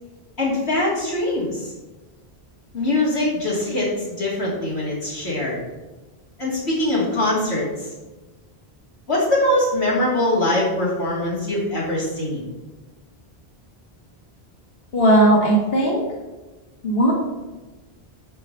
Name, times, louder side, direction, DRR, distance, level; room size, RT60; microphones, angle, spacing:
voice 1, 0.4-1.7 2.7-3.9 4.2-5.6 6.4-7.9 9.1-12.4, left 1 dB, 85° left, -6 dB, 3.0 m, -22 dB
voice 2, 14.9-16.0 16.8-17.1, right 1 dB, 65° left, -3 dB, 2.0 m, -17 dB
9.9 x 5.1 x 5.5 m, 1.2 s
omnidirectional pair, 1.1 m